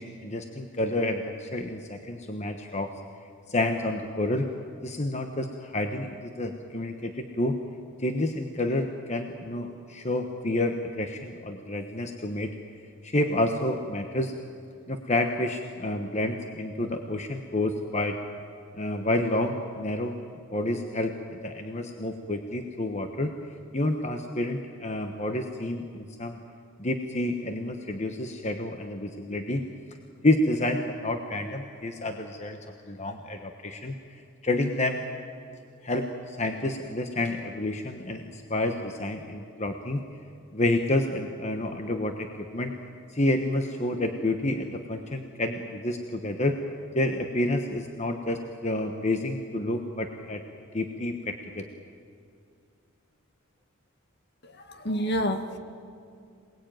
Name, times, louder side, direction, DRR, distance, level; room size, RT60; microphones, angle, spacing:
voice 1, 0.0-2.9 3.5-4.5 4.8-7.6 8.0-12.5 13.0-14.3 14.9-18.2 18.7-20.2 20.5-23.3 23.7-26.4 26.8-29.6 30.2-32.6 32.9-35.0 35.8-40.0 40.5-42.7 43.1-46.6 46.9-50.4 50.7-51.7, left 1 dB, 30° left, 5 dB, 1.1 m, -29 dB
voice 2, 54.4-55.6, equal, 50° left, 7 dB, 1.7 m, -29 dB
27.0 x 19.5 x 9.1 m, 2.4 s
head